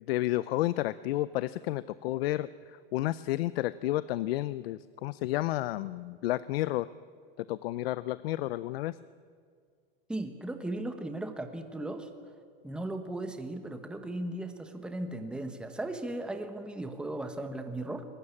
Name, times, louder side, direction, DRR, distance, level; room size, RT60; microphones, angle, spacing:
voice 1, 0.1-6.9 7.4-8.9, left 16 dB, 85° left, 17 dB, 0.6 m, -31 dB
voice 2, 10.1-12.1 12.6-18.0, right 1 dB, 5° right, 7 dB, 1.3 m, -37 dB
22.0 x 18.5 x 9.9 m, 2.1 s
supercardioid pair, 155°, 29 cm